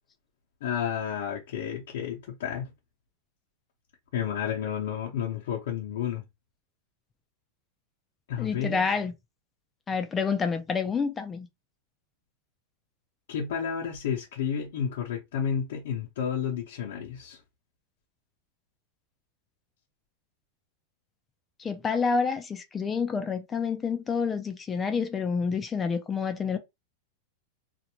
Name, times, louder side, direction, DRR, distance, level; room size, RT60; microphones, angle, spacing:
voice 1, 0.6-2.7 4.1-6.2 8.3-8.8 13.3-17.4, left 8 dB, 75° left, 0.8 m, -31 dB
voice 2, 8.4-9.1 9.9-11.5 21.6-26.6, left 5 dB, 15° left, 0.4 m, -28 dB
2.5 x 2.1 x 2.9 m
supercardioid pair, 160°, 0 cm